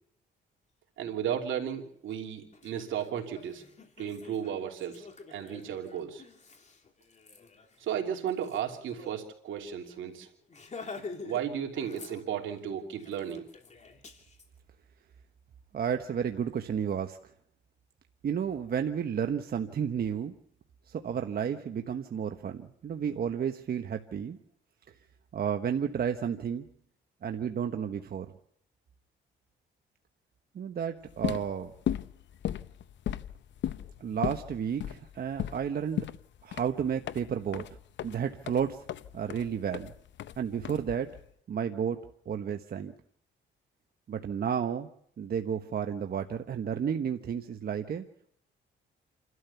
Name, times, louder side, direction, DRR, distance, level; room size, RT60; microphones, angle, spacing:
voice 1, 1.0-3.6 4.0-6.2 7.8-10.3 10.9-13.4, right 9 dB, 75° right, 3 dB, 3.0 m, -34 dB
Laughter, 2.1-2.2 2.5-9.2 9.5-9.6 9.9-10.1 10.5-11.4 11.7-12.6 13.0-14.5, left 4 dB, 35° left, 3.1 m, -47 dB
voice 2, 15.7-17.2 18.2-20.3 20.9-24.4 25.3-26.7 27.2-28.3 30.5-31.7 34.0-36.1 36.4-37.6 38.0-38.8 39.1-39.9 40.4-41.1 41.5-42.0 42.3-42.9 44.1-44.9 45.2-48.0, right 8 dB, 50° right, 6 dB, 1.2 m, -32 dB
sound 1, 31.1-41.3, left 11 dB, 65° left, 0.8 m, -36 dB
28.5 x 13.0 x 7.0 m, 0.68 s
cardioid pair, 90°, 20 cm